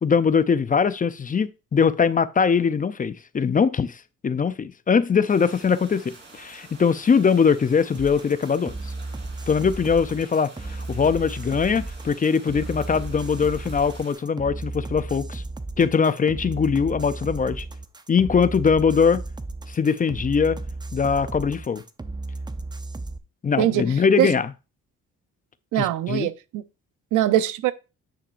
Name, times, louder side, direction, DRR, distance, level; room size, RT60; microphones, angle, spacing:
voice 1, 0.0-8.7 9.5-15.4 15.8-17.7 18.1-19.2 19.7-20.6 20.9-21.8 23.4-24.5 25.8-26.3, left 6 dB, 25° left, 0.5 m, -21 dB
sound 1, 5.3-14.1, right 3 dB, 35° right, 3.6 m, -48 dB
sound 2, 7.9-23.2, right 2 dB, 15° right, 0.7 m, -34 dB
voice 2, 25.7-26.6 27.1-27.7, right 13 dB, 85° right, 0.7 m, -22 dB
9.9 x 5.8 x 2.6 m
cardioid pair, 90°, 30 cm